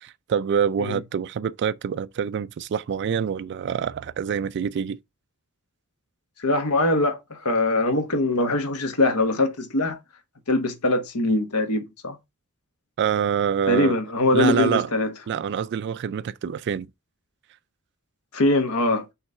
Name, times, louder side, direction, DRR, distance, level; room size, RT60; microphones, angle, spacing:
voice 1, 0.0-5.0 13.0-13.9 14.3-14.9 15.3-16.9, right 7 dB, 50° right, 0.3 m, -26 dB
voice 2, 6.4-10.0 10.5-12.2 13.7-15.1 18.3-19.1, left 2 dB, 90° left, 1.2 m, -22 dB
5.9 x 3.2 x 5.4 m
head